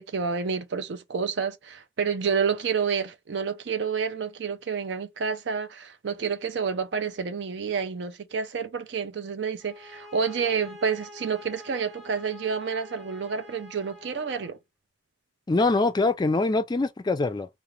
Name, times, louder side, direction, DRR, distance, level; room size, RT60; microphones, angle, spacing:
voice 1, 0.0-14.6, right 6 dB, 75° right, 0.5 m, -29 dB
sound 1, 9.6-14.6, left 1 dB, ahead, 0.8 m, -47 dB
voice 2, 15.5-17.5, left 3 dB, 25° left, 0.3 m, -23 dB
2.4 x 2.0 x 2.9 m
head